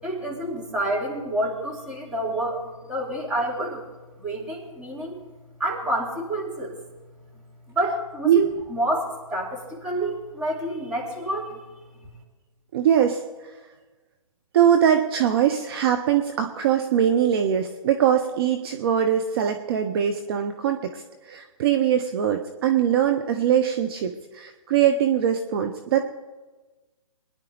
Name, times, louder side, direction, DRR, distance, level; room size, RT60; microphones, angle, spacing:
voice 1, 0.0-3.9 4.2-5.2 5.6-6.8 7.7-11.6 12.0-12.1, right 1 dB, 5° right, -4 dB, 2.8 m, -28 dB
voice 2, 12.7-13.2 14.5-26.0, right 9 dB, 40° right, 6 dB, 0.9 m, -22 dB
23.0 x 10.5 x 3.5 m, 1.2 s
figure-of-eight pair, 135°, 19 cm